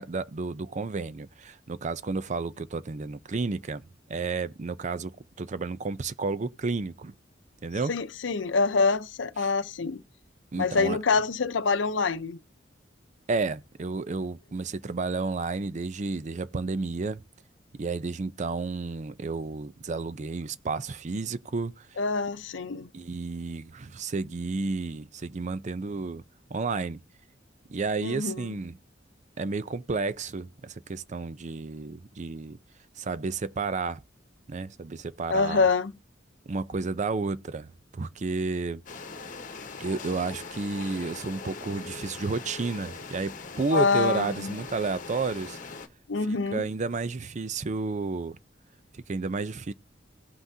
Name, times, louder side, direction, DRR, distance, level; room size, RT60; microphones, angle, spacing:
voice 1, 0.0-3.8 4.1-7.1 7.6-7.9 9.4-9.5 10.5-11.0 13.3-17.2 17.7-22.0 22.9-26.2 26.5-27.0 27.7-28.8 29.4-32.6 33.0-34.0 34.5-35.7 36.5-38.8 39.8-45.6 46.3-48.4 48.9-49.7, right 4 dB, 40° right, 0.5 m, -31 dB
voice 2, 7.9-10.0 10.6-12.4 22.0-22.9 28.0-28.5 35.3-35.9 43.7-44.5 46.1-46.6, left 4 dB, 85° left, 0.7 m, -26 dB
sound 1, 38.9-45.9, left 4 dB, 45° left, 1.1 m, -41 dB
17.5 x 5.8 x 2.7 m
head